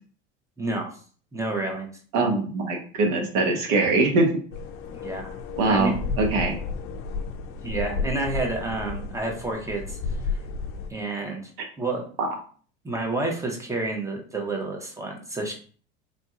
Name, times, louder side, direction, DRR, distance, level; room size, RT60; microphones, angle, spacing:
voice 1, 0.6-0.9 1.3-1.9 4.9-5.3 5.7-5.9 7.6-10.0 10.9-11.4 11.8-12.0 12.8-15.5, right 2 dB, 10° right, 1 dB, 1.0 m, -29 dB
voice 2, 2.1-4.3 5.6-6.6 12.2-12.3, right 3 dB, 65° right, 3 dB, 1.1 m, -22 dB
sound 1, 4.5-10.9, left 4 dB, 40° left, 0.6 m, -32 dB
4.0 x 2.7 x 2.4 m, 0.43 s
hypercardioid pair, 85°, 32 cm